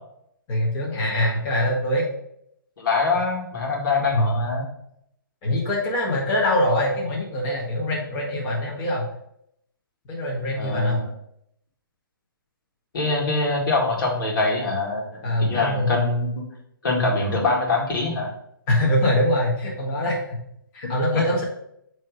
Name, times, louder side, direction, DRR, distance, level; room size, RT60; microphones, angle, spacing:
voice 1, 0.5-2.0 4.1-4.5 5.4-9.0 10.1-11.0 15.2-15.9 18.7-20.2 20.7-21.4, left 1 dB, 30° left, -4 dB, 1.7 m, -23 dB
voice 2, 2.8-4.7 10.6-11.1 12.9-16.3 16.8-18.3 21.1-21.4, left 3 dB, 65° left, -1 dB, 2.0 m, -24 dB
8.4 x 3.2 x 5.0 m, 0.74 s
hypercardioid pair, 145°, 12 cm